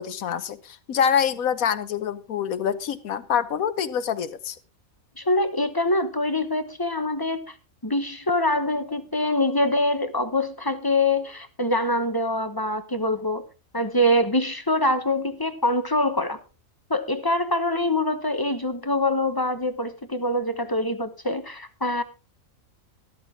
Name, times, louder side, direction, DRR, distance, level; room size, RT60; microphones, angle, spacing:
voice 1, 0.0-4.6, left 8 dB, 80° left, 13 dB, 1.3 m, -25 dB
voice 2, 5.2-7.5 7.8-13.4 13.7-16.4 16.9-22.0, left 1 dB, 20° left, 10 dB, 0.8 m, -24 dB
13.0 x 12.5 x 3.6 m, 0.32 s
omnidirectional pair, 1.5 m